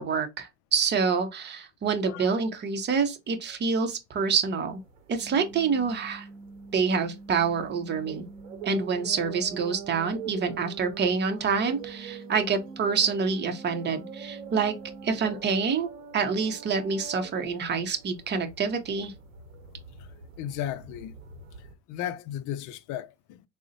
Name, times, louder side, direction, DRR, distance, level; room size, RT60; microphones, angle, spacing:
voice 1, 0.0-4.8 5.1-6.3 6.7-8.2 8.6-14.7 15.0-19.1, right 5 dB, 30° right, 0.8 m, -27 dB
sound 1, 4.7-21.7, right 7 dB, 90° right, 0.7 m, -45 dB
sound 2, 5.2-15.2, right 2 dB, 25° left, 0.8 m, -46 dB
voice 2, 20.4-21.1 21.9-23.4, left 11 dB, 55° left, 0.4 m, -34 dB
3.7 x 2.1 x 2.5 m
hypercardioid pair, 90°, 37 cm